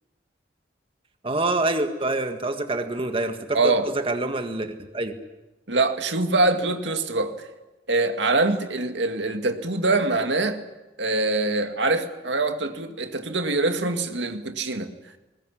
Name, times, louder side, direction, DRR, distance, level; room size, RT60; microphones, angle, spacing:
voice 1, 1.2-5.1, right 2 dB, 30° right, 1.8 m, -26 dB
voice 2, 3.5-3.9 5.7-7.5 7.9-10.6 11.0-14.9, right 2 dB, 85° right, 2.1 m, -24 dB
21.0 x 20.0 x 9.9 m
head